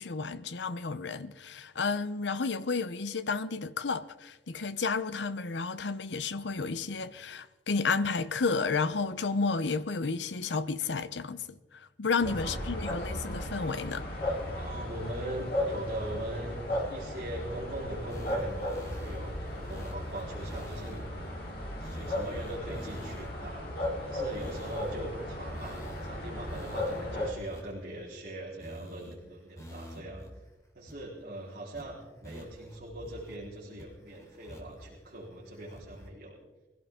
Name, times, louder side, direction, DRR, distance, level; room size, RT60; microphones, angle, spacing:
voice 1, 0.0-14.1, left 4 dB, 70° left, 0.7 m, -32 dB
sound 1, 12.2-27.3, left 1 dB, 55° left, 3.6 m, -36 dB
voice 2, 12.2-12.7 14.5-21.0 21.6-23.7 24.0-30.2 30.7-36.4, right 1 dB, 50° right, 4.2 m, -41 dB
sound 2, 18.1-21.1 21.5-21.6 21.8-23.5 24.2-25.1 25.4-28.3 28.6-29.1 29.5-30.3 30.5-30.6 30.9-31.3 31.7-31.8 32.2-33.4 33.8-34.9 35.3-36.1, equal, 20° left, 3.0 m, -47 dB
22.5 x 16.5 x 3.7 m
head